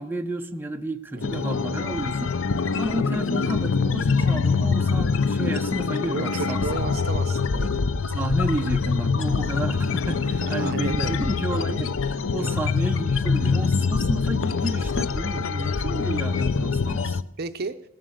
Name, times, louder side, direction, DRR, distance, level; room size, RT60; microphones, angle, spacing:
voice 1, 0.0-2.5 2.7-6.6 8.1-17.2, right 1 dB, 10° right, 4 dB, 0.8 m, -31 dB
sound 1, 1.2-17.2, left 4 dB, 80° left, 0.6 m, -24 dB
voice 2, 6.1-7.7 10.4-11.2 12.4-12.6 15.2-15.5 17.4-17.8, right 4 dB, 55° right, 9 dB, 0.7 m, -33 dB
18.0 x 11.0 x 6.5 m, 0.85 s
head